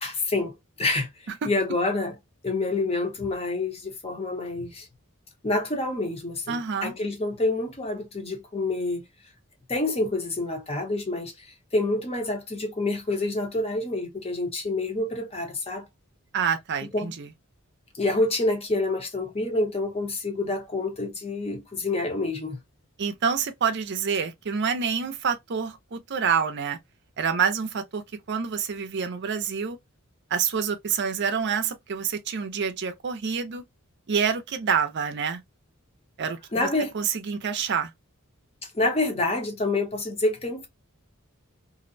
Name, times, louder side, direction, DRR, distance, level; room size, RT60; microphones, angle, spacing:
voice 1, 0.0-1.1 1.4-2.2 2.4-4.9 5.4-9.0 9.7-15.9 16.8-17.2 17.9-22.6 36.5-36.9 38.7-40.7, left 2 dB, 30° left, 0.8 m, -27 dB
voice 2, 6.5-6.9 16.3-17.3 23.0-26.8 27.2-28.0 28.3-29.8 30.3-33.6 34.1-35.4 36.2-36.7 36.9-37.9, right 6 dB, 55° right, 0.5 m, -27 dB
2.6 x 2.1 x 2.5 m
head